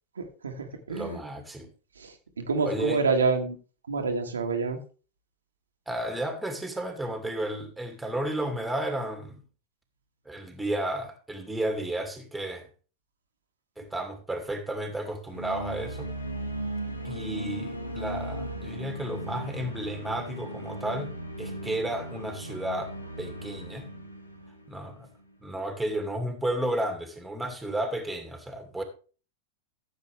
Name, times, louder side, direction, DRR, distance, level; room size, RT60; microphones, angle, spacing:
voice 1, 0.2-1.2 2.0-3.6 3.9-4.8, right 4 dB, 70° right, 4 dB, 1.6 m, -28 dB
voice 2, 0.9-1.7 2.6-3.0 5.9-9.4 10.3-12.7 13.8-16.1 17.0-21.1 21.4-23.9 24.7-25.1 25.4-28.8, right 1 dB, 5° right, 4 dB, 2.4 m, -32 dB
sound 1, 15.3-25.3, right 1 dB, 85° left, 1.8 m, -37 dB
14.5 x 7.7 x 3.4 m, 0.37 s
figure-of-eight pair, 90°, 0 cm